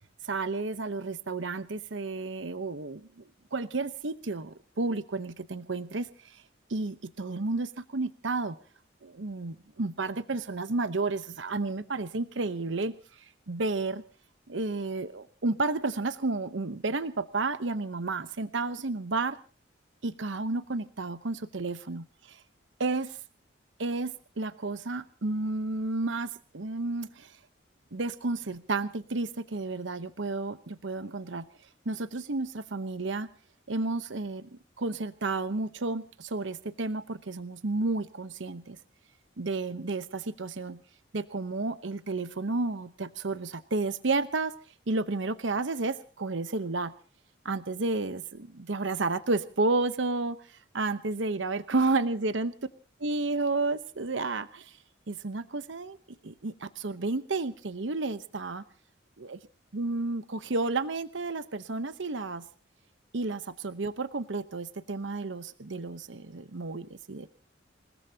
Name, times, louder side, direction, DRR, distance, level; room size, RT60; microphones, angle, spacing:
voice 1, 0.2-3.2 3.5-6.4 6.7-8.5 9.0-14.0 14.5-19.4 20.0-22.4 22.8-23.1 23.8-27.4 27.9-31.5 31.9-33.3 33.7-34.5 34.8-38.8 39.4-40.8 41.1-44.5 44.9-46.9 47.4-52.5 53.0-54.8 55.1-56.0 56.2-58.6 59.2-59.4 59.7-62.4 63.1-67.3, right 3 dB, 75° right, 12 dB, 0.9 m, -31 dB
28.0 x 18.0 x 2.8 m, 0.38 s
head